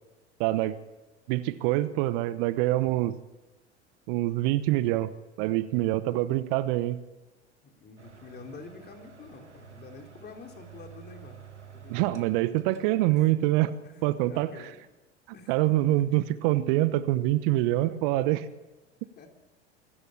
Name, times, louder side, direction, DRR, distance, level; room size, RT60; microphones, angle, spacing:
voice 1, 0.4-0.8 1.3-3.2 4.1-5.1 5.4-7.0 11.9-13.7 14.0-14.5 15.5-18.5, right 16 dB, 50° right, 15 dB, 1.1 m, -25 dB
voice 2, 7.6-12.4 13.1-13.3 13.8-14.8 15.3-15.5 19.2-19.3, left 4 dB, 30° left, 4 dB, 3.6 m, -48 dB
sound 1, 8.0-13.1, right 7 dB, 90° right, 1.7 m, -50 dB
25.0 x 14.0 x 8.6 m, 1.1 s
figure-of-eight pair, 85°, 34 cm